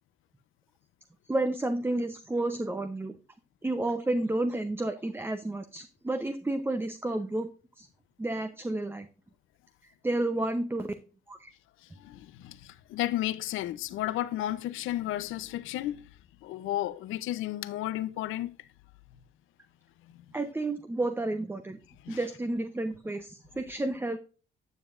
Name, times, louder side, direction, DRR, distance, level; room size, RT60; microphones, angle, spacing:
voice 1, 1.3-3.1 3.6-7.5 7.8-7.9 8.2-9.1 9.8-10.9 11.3-11.5 20.3-21.8 22.1-24.2, right 2 dB, 10° right, 0.7 m, -31 dB
voice 2, 11.8-16.0 16.4-18.7 20.1-20.2 22.0-22.2, left 14 dB, 90° left, 0.7 m, -33 dB
10.0 x 6.9 x 2.5 m
cardioid pair, 90°, 20 cm